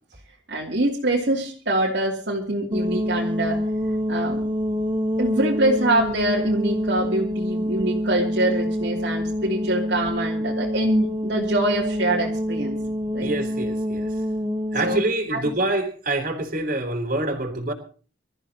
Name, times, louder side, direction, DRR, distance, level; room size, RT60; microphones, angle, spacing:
voice 1, 0.5-3.6 4.1-4.5 5.2-12.8 13.1-13.4 14.8-15.0 15.3-15.6, right 1 dB, 60° right, -3 dB, 2.9 m, -24 dB
sound 1, 2.7-15.1, equal, 25° right, 1.3 m, -26 dB
voice 2, 13.2-14.1 14.7-17.7, right 2 dB, 45° right, 4 dB, 3.7 m, -26 dB
25.5 x 14.0 x 2.9 m, 0.39 s
head